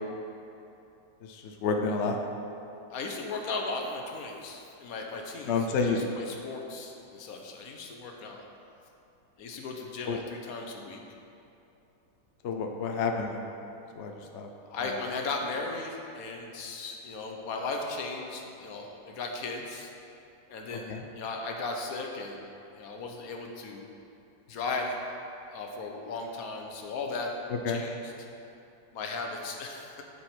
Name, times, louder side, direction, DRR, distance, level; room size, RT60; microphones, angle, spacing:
voice 1, 1.2-2.2 5.5-6.0 10.1-10.2 12.4-13.4 13.9-14.5 14.8-15.0 20.9-21.0 27.6-27.8, left 4 dB, 80° left, 3 dB, 0.6 m, -30 dB
voice 2, 2.9-8.4 9.4-11.0 14.6-19.9 20.5-23.8 24.5-25.0 25.5-27.3 27.7-28.1 28.9-30.0, left 3 dB, 60° left, 1 dB, 1.1 m, -36 dB
12.0 x 4.7 x 4.4 m, 2.7 s
omnidirectional pair, 2.1 m